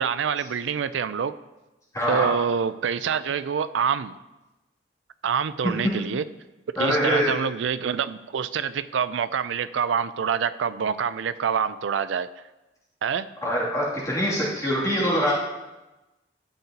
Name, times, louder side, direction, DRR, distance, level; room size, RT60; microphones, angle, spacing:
voice 1, 0.0-1.3 2.1-4.1 5.2-6.2 6.8-12.3 13.0-13.3, right 7 dB, 85° right, 14 dB, 0.4 m, -26 dB
voice 2, 1.9-2.3 6.8-7.3 13.4-15.3, equal, 20° left, -7 dB, 2.6 m, -24 dB
12.5 x 8.0 x 2.9 m, 1.0 s
head